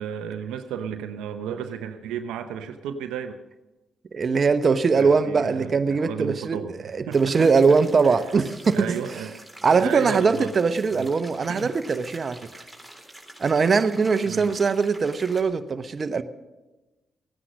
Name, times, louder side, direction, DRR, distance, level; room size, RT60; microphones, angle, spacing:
voice 1, 0.0-3.4 4.9-6.7 7.1-7.8 8.0-8.2 8.7-9.4 9.7-10.5 10.9-11.2 11.5-11.7 14.2-14.5, right 8 dB, 85° right, 8 dB, 0.6 m, -33 dB
voice 2, 4.1-6.6 6.8-9.0 9.6-12.5 13.4-16.2, right 5 dB, 50° right, 10 dB, 0.9 m, -21 dB
sound 1, 7.1-15.4, right 1 dB, 5° left, 3.8 m, -46 dB
15.5 x 9.9 x 6.3 m, 1.1 s
supercardioid pair, 50°, 0 cm